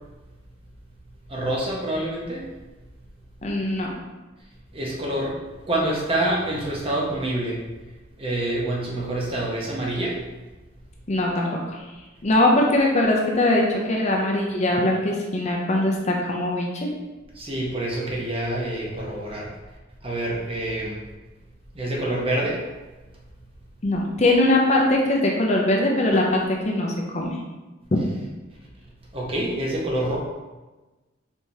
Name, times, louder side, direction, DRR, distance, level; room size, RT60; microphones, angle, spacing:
voice 1, 1.3-2.4 4.7-5.4 5.7-7.6 8.2-10.2 17.3-19.5 20.0-21.0 21.7-22.6 29.1-30.2, right 1 dB, 30° right, -3 dB, 0.9 m, -26 dB
voice 2, 3.4-3.9 11.1-11.8 12.2-16.9 23.8-27.4, left 1 dB, 35° left, -1 dB, 0.5 m, -21 dB
4.7 x 3.3 x 2.8 m, 1.2 s
head